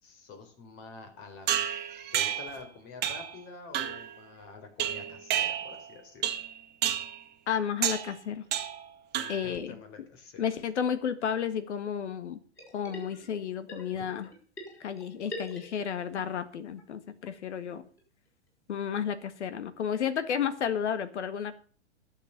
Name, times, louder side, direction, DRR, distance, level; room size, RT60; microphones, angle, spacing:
voice 1, 0.0-1.5 2.1-6.3 9.1-10.4, left 4 dB, 40° left, 6 dB, 4.2 m, -47 dB
sound 1, 1.5-2.6 3.0-3.4 3.7-4.1 4.8-5.9 6.2-6.5 6.8-7.2 7.8-8.1 8.5-8.8 9.1-9.6, right 10 dB, 30° right, 1.7 m, -30 dB
voice 2, 7.5-8.4 9.3-9.8 10.4-12.4 12.7-14.3 14.8-17.8 18.7-21.5, left 8 dB, 75° left, 12 dB, 1.7 m, -32 dB
sound 2, 12.6-13.4 13.7-16.2 16.5-16.6 16.8-16.9 17.2-17.3 17.7-17.8 18.0-18.1 18.5-18.6, equal, 10° left, 6.3 m, -44 dB
11.5 x 7.5 x 7.3 m, 0.43 s
hypercardioid pair, 115°, 34 cm